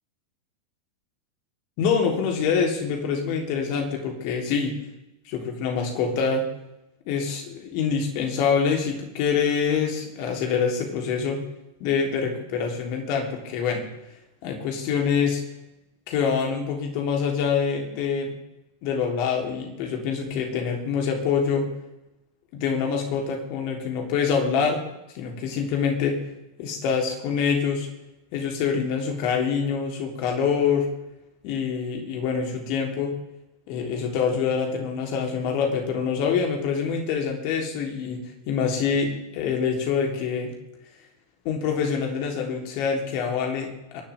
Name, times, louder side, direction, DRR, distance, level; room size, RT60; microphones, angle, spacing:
voice 1, 1.8-4.7 5.3-6.4 7.1-11.4 11.8-13.8 14.4-15.4 16.1-18.3 18.8-21.7 22.5-24.9 25.1-26.2 26.6-27.9 28.3-30.9 31.4-33.1 33.7-40.5 41.4-44.0, left 6 dB, 45° left, 1 dB, 3.6 m, -25 dB
24.5 x 11.5 x 3.6 m, 0.92 s
figure-of-eight pair, 90°, 0 cm